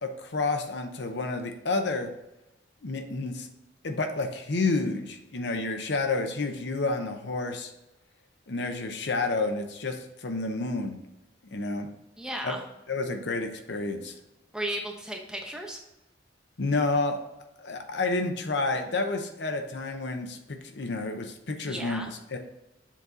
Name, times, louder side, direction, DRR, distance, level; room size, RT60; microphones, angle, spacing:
voice 1, 0.0-2.1 2.8-3.5 3.8-7.7 8.5-11.0 11.5-11.9 12.4-12.5 12.9-14.1 16.6-17.2 17.6-22.4, left 3 dB, 65° left, 6 dB, 0.8 m, -30 dB
voice 2, 12.2-12.6 14.5-15.8 21.7-22.1, right 1 dB, 5° right, 0 dB, 0.9 m, -34 dB
7.4 x 4.1 x 3.9 m, 0.93 s
head